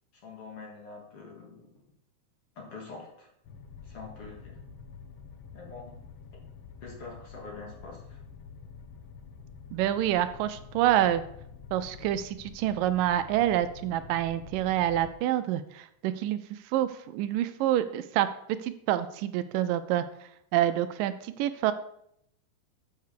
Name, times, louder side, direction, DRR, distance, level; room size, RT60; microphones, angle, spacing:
voice 1, 0.2-1.7 2.6-3.3 3.8-4.6 5.5-6.0 6.8-8.2, left 4 dB, 50° left, -1 dB, 2.4 m, -45 dB
sound 1, 3.4-15.1, left 6 dB, 80° left, 1.3 m, -47 dB
voice 2, 9.7-11.2 11.7-18.3 18.6-20.0 20.5-21.7, right 12 dB, 85° right, 11 dB, 2.2 m, -27 dB
6.9 x 6.6 x 6.5 m, 0.71 s
omnidirectional pair, 4.0 m